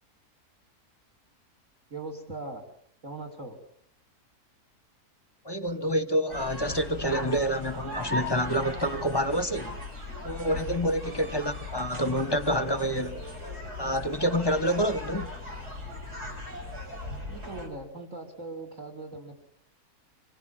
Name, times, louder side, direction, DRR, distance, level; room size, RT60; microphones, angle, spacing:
voice 1, 1.9-2.6 3.0-3.6 17.3-19.4, right 2 dB, 55° right, 5.2 m, -40 dB
voice 2, 5.4-9.8 10.2-13.2 13.8-15.3, equal, 20° left, 1.0 m, -28 dB
sound 1, 6.3-17.7, left 1 dB, 90° right, 8.1 m, -38 dB
26.5 x 26.0 x 7.4 m
omnidirectional pair, 1.6 m